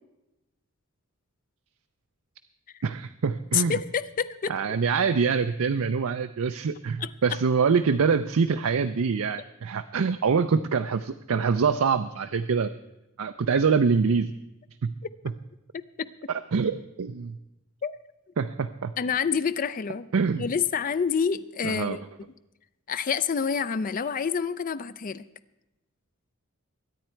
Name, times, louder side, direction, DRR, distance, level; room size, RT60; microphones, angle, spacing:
voice 1, 2.8-3.8 4.5-12.7 13.2-14.3 14.8-14.9 16.3-17.4 18.4-18.9 20.1-20.4 21.6-22.0, right 5 dB, 75° right, 9 dB, 0.5 m, -25 dB
voice 2, 3.5-4.5 7.0-7.1 16.0-16.1 17.8-18.0 19.0-20.1 20.4-22.0 22.9-25.2, left 6 dB, 40° left, 14 dB, 0.4 m, -27 dB
22.0 x 9.4 x 4.5 m, 0.94 s
head